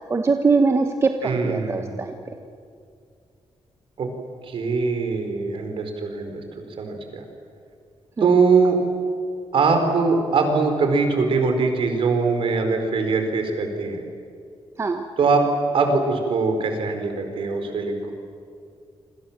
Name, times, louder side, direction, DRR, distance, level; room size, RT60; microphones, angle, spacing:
voice 1, 0.1-2.1 8.2-8.3 14.8-15.0, right 4 dB, 25° right, 5 dB, 1.2 m, -21 dB
voice 2, 1.2-2.0 4.0-4.1 4.4-7.2 8.2-8.8 9.5-14.0 15.2-15.4 15.7-18.1, right 4 dB, 60° right, 5 dB, 4.7 m, -22 dB
28.5 x 25.5 x 7.5 m, 2.4 s
wide cardioid pair, 165°, 10 cm